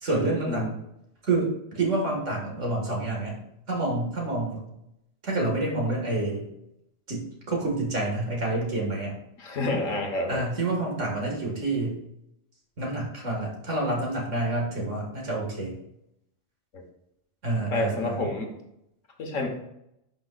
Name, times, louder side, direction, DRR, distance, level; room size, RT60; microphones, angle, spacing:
voice 1, 0.0-0.7 1.2-3.4 3.7-4.7 5.2-6.5 7.1-9.1 10.3-12.0 12.8-15.8 17.4-18.3, right 2 dB, 65° right, -1 dB, 2.3 m, -28 dB
voice 2, 9.4-10.4 16.7-16.8 17.7-18.5 19.2-19.5, left 2 dB, 70° left, 2 dB, 1.7 m, -28 dB
11.0 x 5.5 x 2.5 m, 0.80 s
omnidirectional pair, 1.4 m